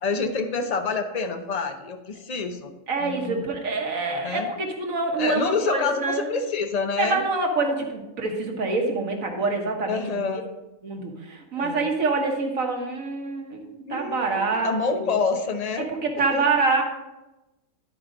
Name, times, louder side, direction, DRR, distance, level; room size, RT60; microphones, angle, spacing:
voice 1, 0.0-2.7 3.0-3.4 4.2-4.5 5.2-7.2 9.9-10.5 11.6-11.9 13.9-15.9 16.2-16.5, left 4 dB, 35° left, 6 dB, 0.7 m, -27 dB
voice 2, 2.9-6.3 7.0-10.3 10.8-13.6 13.9-15.1 15.8-16.8, right 3 dB, 90° right, 1 dB, 1.8 m, -26 dB
12.0 x 4.9 x 3.9 m, 1.0 s
omnidirectional pair, 1.4 m